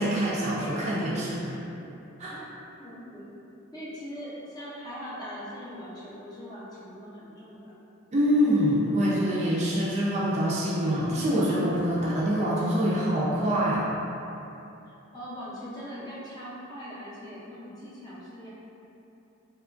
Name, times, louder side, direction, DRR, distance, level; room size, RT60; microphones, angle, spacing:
voice 1, 0.0-1.6 2.2-2.3 8.1-13.9, equal, 35° right, -6 dB, 0.4 m, -25 dB
voice 2, 2.8-3.3 3.7-7.7 15.1-18.5, equal, 20° left, -9 dB, 0.5 m, -41 dB
2.9 x 2.2 x 2.4 m, 2.9 s
head